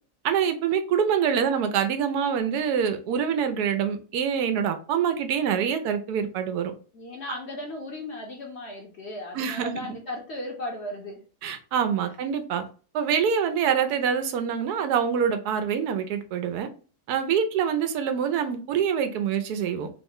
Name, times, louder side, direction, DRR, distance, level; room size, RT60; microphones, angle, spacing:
voice 1, 0.2-6.7 9.3-9.7 11.4-12.6 12.9-16.7 17.1-19.9, right 7 dB, 85° right, 1.1 m, -25 dB
voice 2, 6.9-11.2 12.1-12.2, left 1 dB, 55° left, 0.8 m, -36 dB
3.1 x 2.1 x 3.6 m
omnidirectional pair, 1.6 m